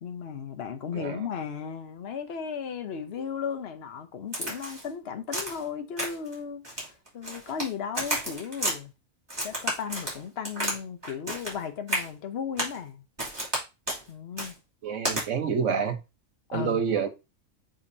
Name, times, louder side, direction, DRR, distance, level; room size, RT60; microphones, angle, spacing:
voice 1, 0.0-6.8 7.1-8.9 9.4-13.0 14.1-14.6 16.5-16.8, left 7 dB, 55° left, 1.1 m, -35 dB
Crack, 4.3-4.9 5.3-5.6 6.0-6.3 6.6-7.7 7.9-8.8 9.3-10.8 11.0-11.6 11.9-12.1 12.6-12.8 13.2-13.6 13.9-14.0 14.4-14.5 15.0-15.2, right 1 dB, 20° right, 2.9 m, -31 dB
voice 2, 14.8-16.0 16.5-17.1, right 6 dB, 70° right, 1.4 m, -27 dB
7.0 x 5.3 x 2.8 m
omnidirectional pair, 1.4 m